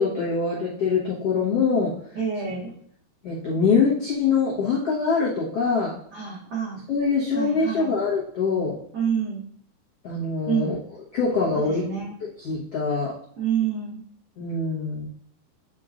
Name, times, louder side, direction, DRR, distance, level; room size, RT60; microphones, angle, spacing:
voice 1, 0.0-1.9 3.2-6.0 6.9-8.8 10.0-10.8 11.1-11.8 12.4-13.2 14.4-15.1, left 5 dB, 85° left, -6 dB, 1.3 m, -24 dB
voice 2, 2.1-2.7 6.1-6.8 7.3-7.9 8.9-9.4 10.5-10.7 11.6-12.1 13.4-14.0, right 7 dB, 80° right, -6 dB, 1.3 m, -27 dB
8.6 x 4.6 x 2.5 m, 0.65 s
omnidirectional pair, 4.8 m